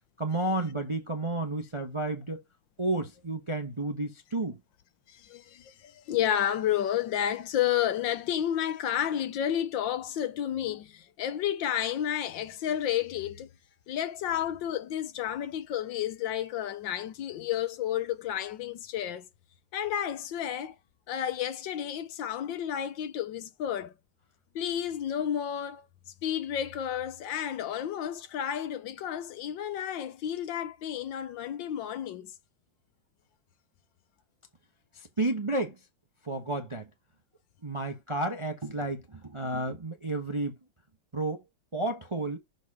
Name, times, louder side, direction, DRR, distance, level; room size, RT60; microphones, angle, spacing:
voice 1, 0.2-2.4 2.8-4.6 35.0-35.8 36.2-36.9 37.6-40.6 41.1-41.4 41.7-42.4, right 2 dB, 30° right, 0.6 m, -31 dB
voice 2, 5.1-13.5 13.9-19.3 19.7-20.7 21.1-23.9 24.5-25.8 26.2-32.3, left 10 dB, 75° left, 1.5 m, -31 dB
6.7 x 4.2 x 4.8 m
omnidirectional pair, 2.1 m